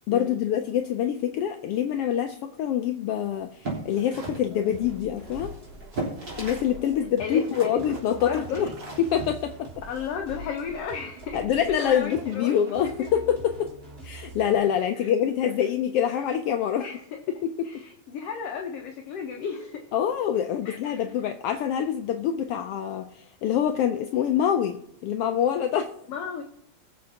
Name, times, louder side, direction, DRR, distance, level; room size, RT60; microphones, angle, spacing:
voice 1, 0.1-5.5 6.4-8.3 8.6-8.7 9.0-9.7 11.3-13.7 14.0-16.8 17.3-17.7 19.9-25.9, left 9 dB, 85° left, 6 dB, 1.3 m, -25 dB
sound 1, 3.4-6.7 7.0-10.1, right 2 dB, 35° right, 4.2 m, -37 dB
sound 2, 4.0-14.8, right 6 dB, 80° right, 0.9 m, -51 dB
sound 3, 4.7-14.6, right 1 dB, 15° right, 2.9 m, -44 dB
voice 2, 7.2-7.8 8.1-8.7 9.9-12.6 13.0-13.1 15.0-15.1 15.4-15.5 16.0-16.2 16.8-17.2 17.6-19.9 20.7-21.0 26.1-26.4, left 6 dB, 65° left, 2 dB, 1.9 m, -34 dB
21.5 x 7.4 x 2.8 m, 0.77 s
omnidirectional pair, 3.3 m